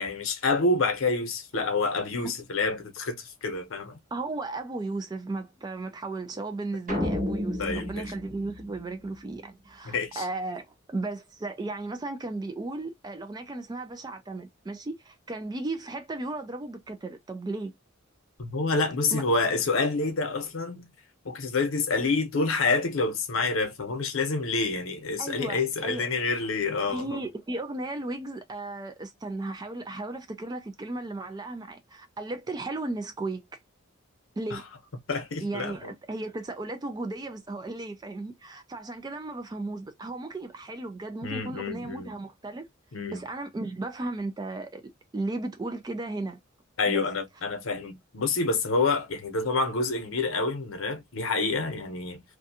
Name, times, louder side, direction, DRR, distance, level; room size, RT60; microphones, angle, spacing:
voice 1, 0.0-4.0 7.6-8.0 9.8-10.2 18.4-20.9 21.2-27.2 34.5-34.6 35.1-35.9 41.2-42.1 42.9-43.2 46.8-52.2, left 3 dB, 80° left, 0.8 m, -28 dB
voice 2, 4.1-17.7 19.1-19.2 25.2-26.1 26.9-33.6 34.4-34.6 35.4-42.7 43.1-46.4 46.9-47.1, right 2 dB, 20° right, 0.3 m, -35 dB
sound 1, 6.9-9.3, left 1 dB, 40° right, 1.0 m, -32 dB
2.5 x 2.3 x 2.6 m
head